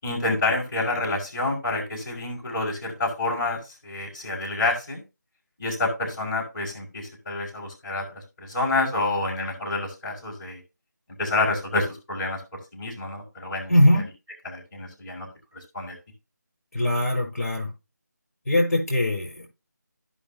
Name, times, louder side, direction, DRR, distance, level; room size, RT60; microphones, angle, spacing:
voice 1, 0.0-5.0 5.6-10.6 11.2-12.4 12.7-14.0 14.4-15.3 15.7-16.0, left 2 dB, 20° left, 5.5 m, -28 dB
voice 2, 13.7-14.1 16.7-17.7 18.5-19.5, left 1 dB, 55° left, 5.7 m, -21 dB
16.5 x 5.8 x 2.9 m
figure-of-eight pair, 165°, 10 cm